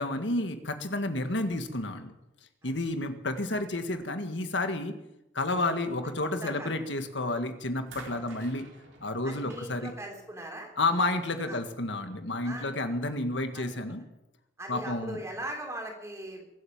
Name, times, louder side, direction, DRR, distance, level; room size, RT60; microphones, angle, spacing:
voice 1, 0.0-2.1 2.6-4.9 5.3-8.7 9.0-9.9 10.8-14.0 14.7-15.2, left 2 dB, 70° left, 7 dB, 1.8 m, -30 dB
voice 2, 6.3-6.7 9.2-10.7 11.4-11.6 12.4-12.7 13.5-14.0 14.6-16.6, right 1 dB, 15° right, 1 dB, 3.6 m, -40 dB
sound 1, 6.9-7.3 7.9-11.1 12.2-12.3, right 3 dB, 70° right, 3.6 m, -52 dB
23.5 x 8.1 x 7.3 m, 0.90 s
head